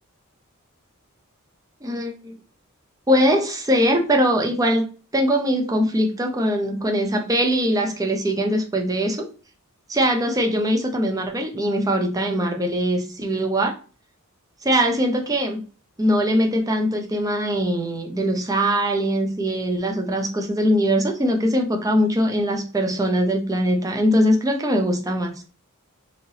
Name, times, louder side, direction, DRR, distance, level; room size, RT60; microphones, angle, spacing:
voice 1, 1.8-2.3 3.1-4.8 5.1-9.3 9.9-13.8 14.6-15.6 16.0-25.3, equal, 15° right, 2 dB, 0.5 m, -21 dB
3.2 x 2.7 x 2.7 m, 0.37 s
head